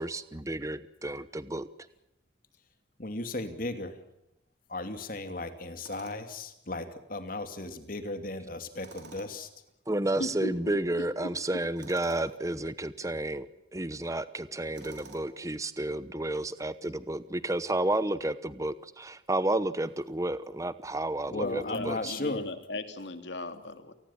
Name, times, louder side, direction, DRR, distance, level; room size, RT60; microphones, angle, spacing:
voice 1, 0.0-1.7 9.9-13.5 13.7-22.1, right 1 dB, 15° right, 14 dB, 0.9 m, -31 dB
voice 2, 3.0-4.0 4.7-9.5 21.3-22.4, left 2 dB, 50° left, 8 dB, 2.7 m, -36 dB
Tools, 5.8-6.4 8.8-9.5 11.8-12.3 14.7-15.4, right 4 dB, 70° right, 5.3 m, -50 dB
voice 3, 10.2-11.3 21.4-23.9, left 2 dB, 75° left, 8 dB, 2.9 m, -37 dB
29.0 x 19.5 x 7.2 m, 0.89 s
head